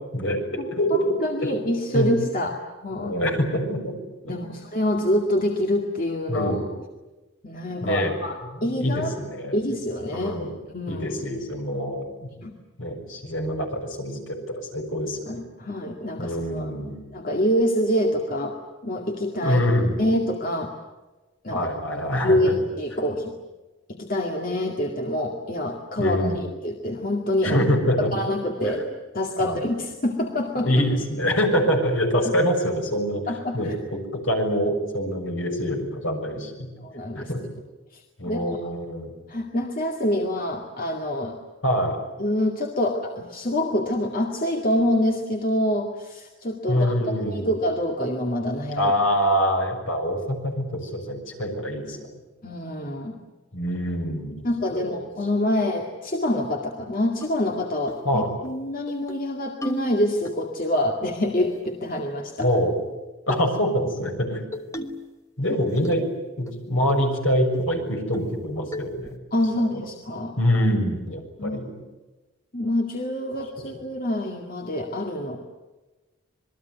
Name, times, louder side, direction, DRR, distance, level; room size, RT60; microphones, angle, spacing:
voice 1, 0.1-1.5 1.9-2.1 3.0-3.9 4.3-4.6 6.3-6.6 7.8-8.1 8.8-9.5 10.1-10.5 10.9-12.3 12.8-15.4 16.2-17.0 19.4-20.0 21.5-22.5 26.0-26.4 27.4-28.1 28.6-28.8 29.4-29.6 30.6-33.2 33.5-36.7 37.1-37.4 38.2-39.2 41.6-42.0 46.7-47.5 48.8-52.1 53.5-54.5 54.7-54.9 58.0-58.3 62.4-62.8 63.3-64.4 65.4-66.1 66.4-69.1 70.4-71.7, equal, 65° left, 2 dB, 6.6 m, -25 dB
voice 2, 0.9-3.1 4.2-6.6 7.4-8.3 8.6-9.1 9.5-10.4 10.7-11.1 12.3-12.5 15.3-16.7 17.1-18.6 18.8-19.6 20.0-20.7 21.4-21.7 22.2-23.3 23.9-27.6 28.0-28.8 29.1-30.7 32.2-32.3 33.3-33.7 36.8-37.3 38.3-38.4 39.3-41.4 42.2-48.9 52.4-53.2 54.4-62.5 69.3-70.3 71.4-71.6 72.5-75.4, left 1 dB, 40° left, 1 dB, 2.2 m, -26 dB
sound 1, 57.2-57.3 57.9-58.1 58.4-58.5 58.9-59.2 59.6-60.4 61.4-62.0 62.4-62.7 63.3-63.5 64.5-65.1 65.4-66.1 66.5-66.6 66.9-67.1 67.5-67.6 68.1-68.4 68.7-69.2, left 1 dB, 15° left, 1.2 m, -36 dB
27.0 x 21.0 x 9.3 m, 1.2 s
head